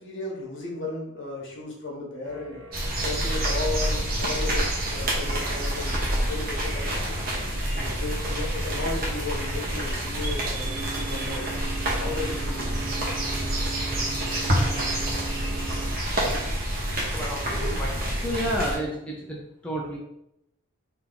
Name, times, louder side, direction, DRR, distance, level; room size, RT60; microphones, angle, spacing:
voice 1, 0.0-2.6 3.0-7.2 7.7-11.4 12.0-12.8, left 2 dB, 60° left, -2 dB, 1.2 m, -35 dB
sound 1, 2.2-18.7, right 4 dB, 65° right, 1.0 m, -42 dB
sound 2, 2.7-18.8, right 1 dB, 45° right, 0.9 m, -27 dB
voice 2, 17.1-17.9 18.2-19.4 19.6-20.0, equal, 5° left, -4 dB, 0.5 m, -30 dB
3.6 x 2.8 x 3.9 m, 0.82 s
head